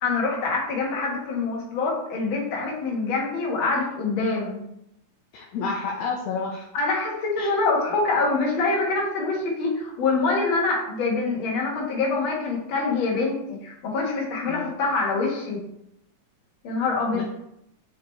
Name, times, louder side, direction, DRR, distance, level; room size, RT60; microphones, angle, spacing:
voice 1, 0.0-4.6 6.7-15.6 16.6-17.2, left 3 dB, 50° left, -2 dB, 1.9 m, -25 dB
voice 2, 5.3-6.7 7.4-7.5 14.5-14.6 17.1-17.2, left 4 dB, 75° left, -1 dB, 1.7 m, -30 dB
5.1 x 4.9 x 4.4 m, 0.79 s
omnidirectional pair, 3.6 m